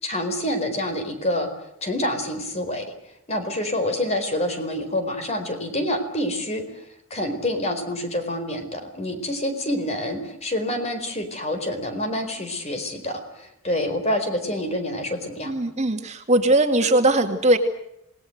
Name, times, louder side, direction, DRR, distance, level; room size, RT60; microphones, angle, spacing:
voice 1, 0.0-1.5 1.8-2.8 3.3-15.5, left 1 dB, 30° left, 8 dB, 4.6 m, -27 dB
voice 2, 15.4-17.6, right 1 dB, 35° right, 5 dB, 2.2 m, -20 dB
27.5 x 19.5 x 7.9 m, 0.79 s
head